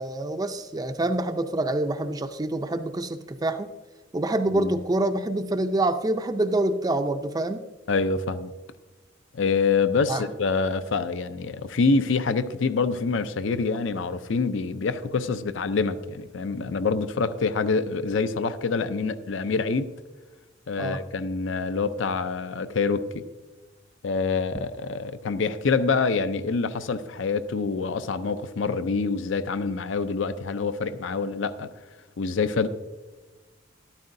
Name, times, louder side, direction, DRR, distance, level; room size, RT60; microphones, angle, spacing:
voice 1, 0.0-3.7 4.1-7.6 10.1-10.3 20.8-21.0, right 1 dB, 20° right, 0.4 m, -26 dB
voice 2, 7.9-8.5 9.3-19.9 20.7-23.2 24.0-31.7 32.2-32.7, left 4 dB, 70° left, 0.5 m, -26 dB
13.0 x 12.5 x 2.6 m
head